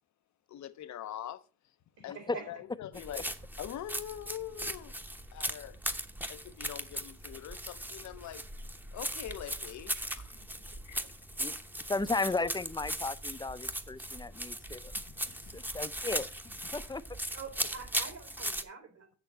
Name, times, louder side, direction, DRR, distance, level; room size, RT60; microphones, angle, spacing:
voice 1, 0.5-1.5 2.0-3.3 3.6-5.0 5.3-5.8 6.3-8.4 8.9-10.4 10.8-11.0 14.9-15.2 15.5-15.7, left 11 dB, 70° left, 0.9 m, -43 dB
voice 2, 2.0-2.5 17.3-19.2, right 5 dB, 65° right, 4.1 m, -46 dB
sound 1, 2.9-18.6, right 1 dB, 5° right, 1.0 m, -38 dB
voice 3, 11.9-14.9 15.3-16.3 16.7-17.0, left 3 dB, 15° left, 0.7 m, -35 dB
7.1 x 6.8 x 6.6 m
cardioid pair, 90°, 30 cm